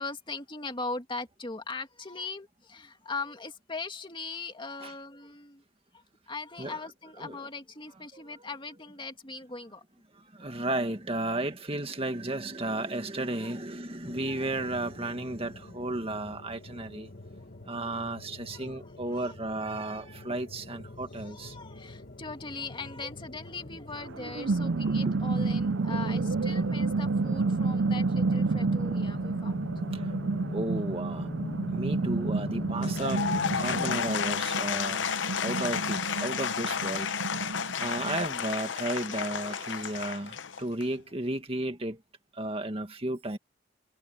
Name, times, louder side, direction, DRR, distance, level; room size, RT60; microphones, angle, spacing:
voice 1, 0.0-5.6 6.3-9.8 13.4-13.5 18.5-19.3 20.3-20.4 21.1-29.7, left 3 dB, 25° left, 2.4 m, -40 dB
voice 2, 10.3-17.1 17.7-21.5 25.0-25.2 29.9-30.0 30.5-31.3 31.7-33.2 33.6-35.0 35.4-37.1 37.8-42.0 42.3-43.4, right 2 dB, 30° right, 1.9 m, -33 dB
sound 1, 14.0-33.9, left 2 dB, 55° left, 2.0 m, -43 dB
sound 2, 24.0-38.3, right 3 dB, 65° right, 0.5 m, -30 dB
Applause / Crowd, 32.7-41.0, left 7 dB, 70° left, 0.8 m, -32 dB
head